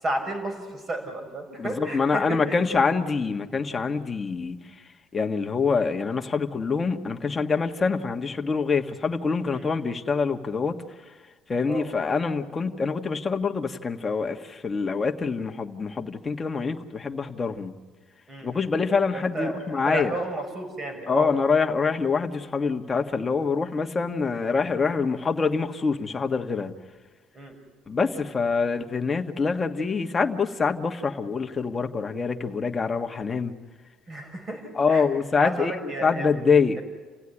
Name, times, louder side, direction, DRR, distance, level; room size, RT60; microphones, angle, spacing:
voice 1, 0.0-2.6 9.5-9.7 11.6-11.9 18.3-18.7 19.1-21.3 27.3-27.5 34.1-35.0 35.3-36.3, right 1 dB, 30° right, 4 dB, 6.6 m, -32 dB
voice 2, 1.6-4.6 5.1-10.8 11.5-17.7 18.4-20.1 21.1-26.7 27.9-33.5 34.7-36.8, left 5 dB, 25° left, 4 dB, 1.5 m, -25 dB
29.5 x 16.5 x 10.0 m, 1.4 s
cardioid pair, 125°, 0 cm